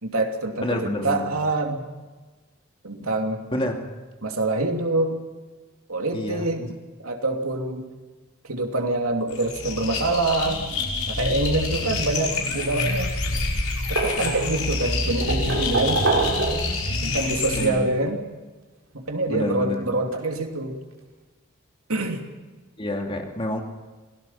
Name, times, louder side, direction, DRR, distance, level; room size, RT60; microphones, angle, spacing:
voice 1, 0.0-1.9 2.8-3.4 4.2-5.2 5.9-6.6 7.0-7.9 8.4-10.6 11.1-13.1 13.9-16.1 17.0-18.2 18.9-20.8 21.9-22.2, right 2 dB, 80° right, 3 dB, 2.8 m, -25 dB
voice 2, 0.6-1.3 3.5-4.0 6.1-6.7 17.5-17.9 19.3-19.8 22.8-23.6, left 1 dB, 25° left, 2 dB, 2.7 m, -28 dB
sound 1, 9.3-17.7, left 3 dB, 85° left, 5.8 m, -27 dB
sound 2, 12.6-13.3 13.6-14.7 15.2-16.9 18.1-18.2 19.7-19.8 20.1-20.2, right 3 dB, 60° right, 4.2 m, -26 dB
27.5 x 18.0 x 5.8 m, 1.3 s
head